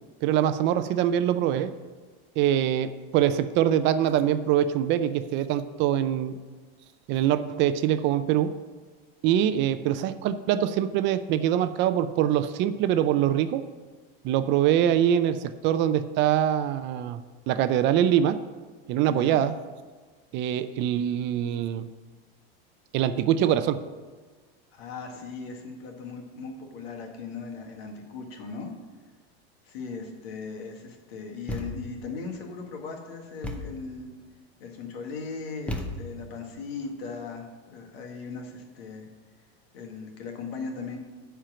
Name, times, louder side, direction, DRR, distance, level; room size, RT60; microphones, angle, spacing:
voice 1, 0.2-1.7 2.4-6.4 7.1-8.5 9.2-13.6 14.2-17.2 17.5-18.4 18.9-19.5 20.3-21.9 22.9-23.8, right 10 dB, 40° right, 12 dB, 0.4 m, -24 dB
voice 2, 19.0-19.4 24.7-28.7 29.7-34.1 34.6-39.1 39.7-41.0, left 4 dB, 80° left, 2 dB, 1.9 m, -38 dB
Thump thud, 31.5-32.0 33.4-33.9 35.7-36.3, left 1 dB, 5° left, 0.6 m, -35 dB
9.9 x 4.5 x 7.5 m, 1.3 s
supercardioid pair, 140°, 30 cm